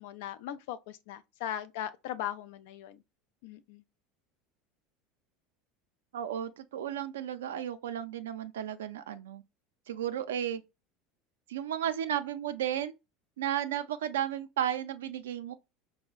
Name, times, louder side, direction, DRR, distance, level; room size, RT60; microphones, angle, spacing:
voice 1, 0.0-3.0 3.4-3.8, left 11 dB, 75° left, 0.4 m, -39 dB
voice 2, 6.1-9.4 9.9-10.6 11.5-12.9 13.4-15.5, right 10 dB, 90° right, 0.4 m, -33 dB
4.4 x 2.0 x 2.3 m
hypercardioid pair, 95°, 0 cm